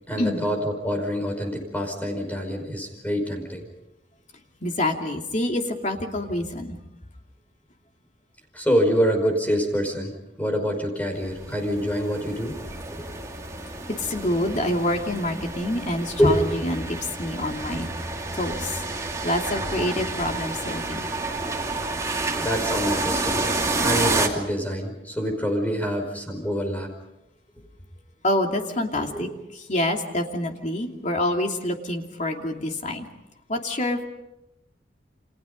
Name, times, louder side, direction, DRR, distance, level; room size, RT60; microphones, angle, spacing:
voice 1, 0.1-3.7 8.5-12.6 12.9-13.1 16.2-16.4 22.4-23.5 23.8-26.9 29.0-29.4, equal, 10° left, 4 dB, 5.3 m, -26 dB
voice 2, 4.6-6.8 14.0-17.9 18.3-18.7 19.2-21.1 28.2-29.3 29.7-33.0 33.5-34.0, left 1 dB, 45° left, 2 dB, 2.8 m, -27 dB
sound 1, 11.1-24.3, right 3 dB, 20° right, 2.8 m, -29 dB
29.5 x 26.5 x 5.3 m, 0.90 s
head